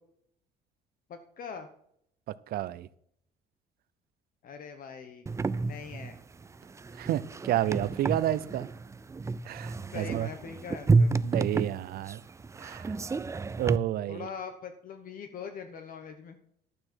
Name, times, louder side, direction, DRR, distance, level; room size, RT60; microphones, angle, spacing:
voice 1, 1.1-1.7 4.4-5.3 5.6-6.2 9.9-11.1 14.1-16.4, left 6 dB, 55° left, 1.1 m, -42 dB
voice 2, 2.5-2.9 7.0-8.7 9.5-10.3 11.2-12.2 12.6-13.0 13.6-14.3, right 13 dB, 65° right, 0.6 m, -30 dB
sound 1, 5.3-13.8, right 3 dB, 15° right, 0.4 m, -30 dB
12.0 x 8.7 x 4.5 m
cardioid pair, 110°, 17 cm